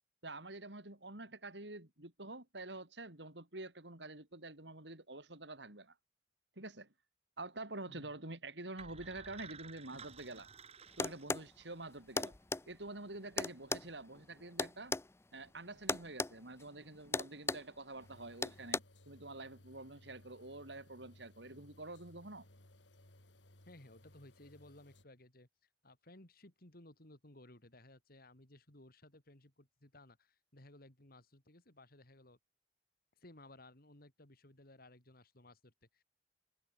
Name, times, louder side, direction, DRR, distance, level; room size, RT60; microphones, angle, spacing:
voice 1, 0.2-5.9 6.6-6.9 7.4-10.5 11.0-12.3 12.7-15.0 15.3-22.5, right 2 dB, 70° right, 4.8 m, -47 dB
sound 1, 8.8-11.8, right 5 dB, 35° right, 4.3 m, -54 dB
sound 2, 11.0-11.5 12.2-12.6 13.4-15.1 15.9-16.3 16.6-16.8 17.1-17.7 18.4-18.8, left 3 dB, 15° left, 0.5 m, -36 dB
sound 3, 18.0-25.0, left 1 dB, 80° left, 4.7 m, -62 dB
voice 2, 23.6-25.5 25.8-32.4 33.2-36.0, left 1 dB, 55° left, 3.9 m, -59 dB
head